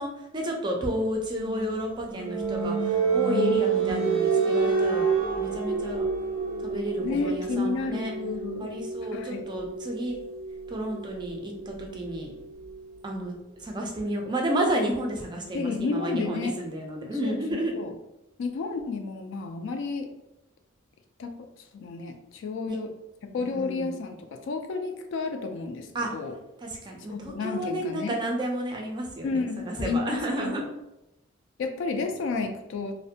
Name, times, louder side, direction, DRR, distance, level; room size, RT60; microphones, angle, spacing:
voice 1, 0.0-5.1 5.4-6.1 6.6-8.1 8.6-10.2 10.7-12.3 13.0-13.3 13.6-17.7 22.7-22.8 23.4-23.9 25.9-26.1 26.6-30.6, right 1 dB, 20° right, 1 dB, 0.3 m, -31 dB
sound 1, 1.3-12.9, right 5 dB, 80° right, 0.5 m, -29 dB
voice 2, 7.0-8.7 9.1-9.4 15.5-16.5 17.2-17.9 18.4-20.1 21.2-21.3 21.7-22.9 23.3-26.4 27.1-28.2 29.2-30.6 31.6-32.9, left 4 dB, 60° left, 6 dB, 0.3 m, -31 dB
2.4 x 2.1 x 2.6 m, 0.92 s
head